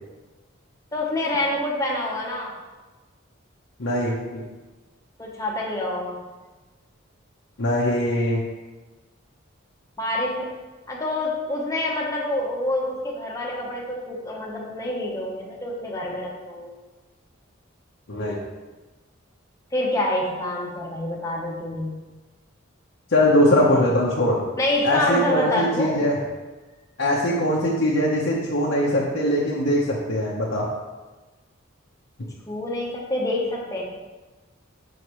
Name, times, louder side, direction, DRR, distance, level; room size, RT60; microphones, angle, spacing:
voice 1, 0.9-2.6 5.2-6.2 10.0-10.5 10.9-16.7 19.7-22.0 24.6-26.1 32.5-33.9, left 1 dB, 15° left, -2 dB, 1.0 m, -27 dB
voice 2, 3.8-4.4 7.6-8.4 18.1-18.4 23.1-24.4 24.8-26.2 27.0-30.7, left 1 dB, 70° left, -5 dB, 1.0 m, -21 dB
6.4 x 6.3 x 3.1 m, 1.2 s
head